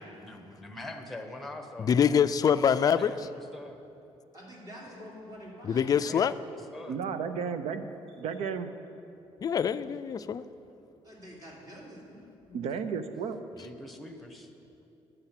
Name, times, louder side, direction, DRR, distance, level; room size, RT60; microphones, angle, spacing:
voice 1, 0.0-1.9 2.9-3.8 6.1-7.0 13.5-14.5, left 1 dB, ahead, 1.0 m, -44 dB
voice 2, 1.8-3.1 5.6-6.3 9.4-10.4, left 7 dB, 35° left, 0.3 m, -25 dB
voice 3, 4.3-6.2 11.0-12.2, equal, 35° right, 2.9 m, -47 dB
voice 4, 6.8-7.9 8.2-8.7 12.5-13.4, right 6 dB, 80° right, 0.7 m, -33 dB
11.0 x 8.0 x 5.8 m
cardioid pair, 110°, 11 cm